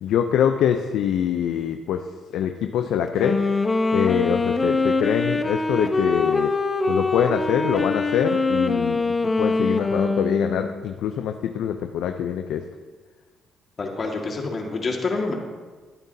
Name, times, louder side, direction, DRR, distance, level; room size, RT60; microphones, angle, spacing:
voice 1, 0.0-2.1 2.3-3.4 3.9-6.5 6.9-9.1 9.4-12.6, left 9 dB, 75° left, 6 dB, 0.6 m, -24 dB
Wind instrument woodwind instrument, 3.1-10.8, left 3 dB, 30° left, 0.9 m, -23 dB
voice 2, 13.8-15.3, left 3 dB, 45° left, 1 dB, 1.9 m, -27 dB
17.0 x 9.0 x 2.8 m, 1.4 s
supercardioid pair, 60°, 0 cm